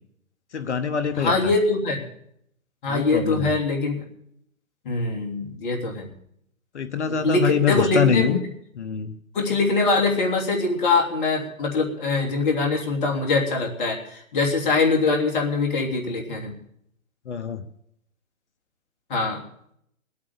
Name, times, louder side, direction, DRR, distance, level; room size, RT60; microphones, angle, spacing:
voice 1, 0.5-1.5 2.9-3.6 6.7-8.4 8.8-9.1 17.3-17.6, left 7 dB, 55° left, 11 dB, 1.2 m, -24 dB
voice 2, 1.1-2.0 2.8-4.0 4.8-6.1 7.2-8.4 9.3-16.5 19.1-19.4, left 3 dB, 35° left, 0 dB, 3.2 m, -23 dB
20.0 x 8.7 x 6.8 m, 0.72 s
figure-of-eight pair, 140°, 41 cm